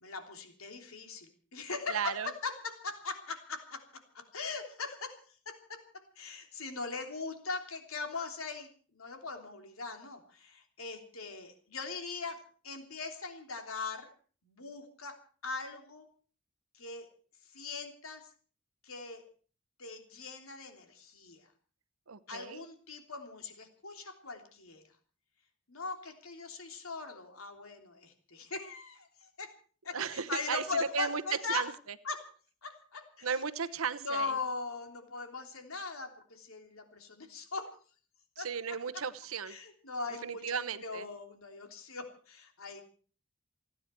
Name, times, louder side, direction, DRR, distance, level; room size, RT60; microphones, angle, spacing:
voice 1, 0.0-3.8 4.3-5.2 5.4-5.8 6.2-14.1 14.4-15.2 15.4-16.1 16.7-17.1 17.5-18.2 18.8-19.2 19.8-21.5 22.3-24.8 25.7-29.5 29.8-31.6 32.0-32.2 32.6-33.3 34.0-37.7 38.4-38.5 39.4-42.8, left 4 dB, 85° left, 4 dB, 3.2 m, -40 dB
voice 2, 1.9-2.3 22.1-22.6 29.9-31.2 31.5-31.7 33.2-34.4 38.4-39.6 40.2-41.1, right 6 dB, 85° right, 12 dB, 1.0 m, -35 dB
29.5 x 10.0 x 4.5 m, 0.43 s
head